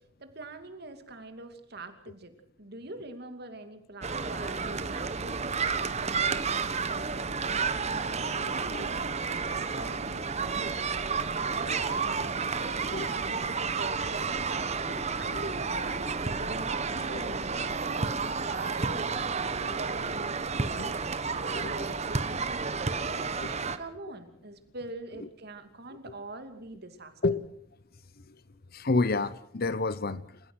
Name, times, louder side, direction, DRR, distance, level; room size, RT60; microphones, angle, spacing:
voice 1, 0.2-2.3 2.6-7.7 8.4-8.9 9.3-10.8 11.3-14.7 15.2-20.8 21.3-23.1 23.4-27.1, right 2 dB, 55° right, 2.7 m, -44 dB
sound 1, 4.0-23.8, right 5 dB, 35° right, 1.1 m, -31 dB
voice 2, 8.3-8.9 12.9-13.4 14.7-15.4 17.1-17.2 19.5-19.8 20.8-20.9 21.5-21.9 23.1-23.5 25.2-25.3 27.2-27.4 28.3-28.4 28.7-30.4, left 3 dB, 55° left, 0.9 m, -31 dB
28.5 x 15.5 x 6.3 m
head